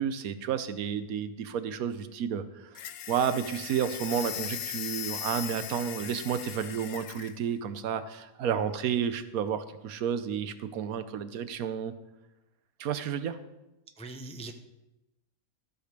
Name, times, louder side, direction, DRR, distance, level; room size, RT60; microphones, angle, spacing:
voice 1, 0.0-11.9 12.8-13.4, right 8 dB, 85° right, 11 dB, 1.2 m, -31 dB
sound 1, 2.7-7.4, left 10 dB, 70° left, 1.0 m, -38 dB
voice 2, 14.0-14.5, right 3 dB, 10° left, 5 dB, 0.4 m, -42 dB
13.5 x 5.1 x 6.6 m, 0.98 s
omnidirectional pair, 1.5 m